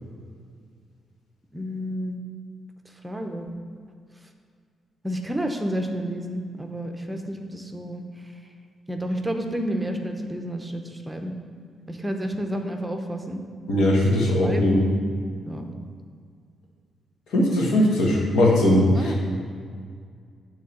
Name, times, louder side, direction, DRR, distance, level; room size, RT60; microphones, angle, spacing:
voice 1, 1.5-2.2 3.0-3.5 5.0-8.1 8.9-11.3 11.9-13.4 14.1-14.9 15.4-15.7 18.9-19.2, equal, 10° right, 4 dB, 0.8 m, -30 dB
voice 2, 13.7-14.8 17.3-19.1, left 1 dB, 85° left, -2 dB, 1.6 m, -19 dB
8.4 x 3.8 x 6.5 m, 2.1 s
cardioid pair, 70°, 0 cm